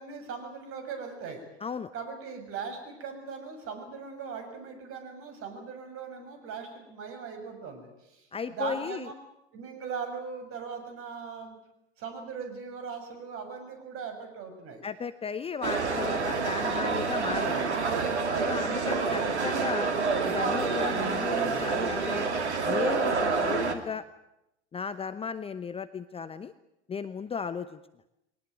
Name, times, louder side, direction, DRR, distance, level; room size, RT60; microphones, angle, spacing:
voice 1, 0.0-1.4 1.9-9.1 9.5-11.6 12.0-14.8 16.0-16.4 18.3-18.6, right 5 dB, 40° right, 6 dB, 6.8 m, -39 dB
voice 2, 1.6-1.9 8.3-9.1 14.8-17.7 18.5-19.9 20.2-22.3 22.6-24.0 24.7-26.5 26.9-27.8, left 6 dB, 15° left, 13 dB, 0.9 m, -35 dB
sound 1, 15.6-23.7, right 4 dB, 75° right, 2.7 m, -28 dB
23.0 x 19.0 x 9.4 m, 0.87 s
figure-of-eight pair, 85°, 34 cm